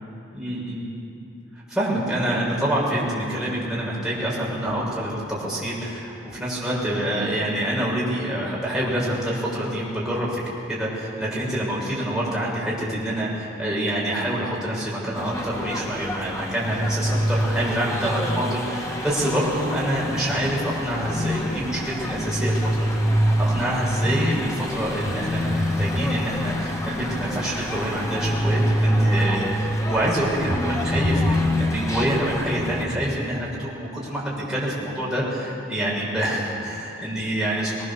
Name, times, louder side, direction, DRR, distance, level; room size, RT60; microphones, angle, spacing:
voice 1, 0.3-0.9 1.7-10.4 10.7-37.8, right 1 dB, 5° right, -7 dB, 6.2 m, -26 dB
sound 1, 15.1-32.8, equal, 15° left, 1.8 m, -25 dB
22.0 x 21.0 x 7.1 m, 2.7 s
head